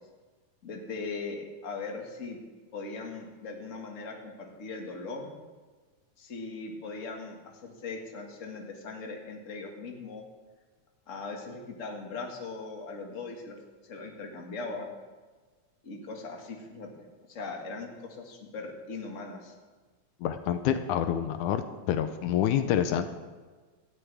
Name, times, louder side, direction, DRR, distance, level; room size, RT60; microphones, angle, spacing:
voice 1, 0.6-2.4 2.7-5.3 6.2-10.2 11.1-13.6 13.8-14.9 15.8-16.9 17.3-19.5, left 3 dB, 30° left, 1 dB, 1.8 m, -39 dB
voice 2, 20.2-21.6 21.9-23.1, left 10 dB, 80° left, 9 dB, 2.2 m, -27 dB
18.0 x 13.5 x 3.5 m, 1.4 s
omnidirectional pair, 3.5 m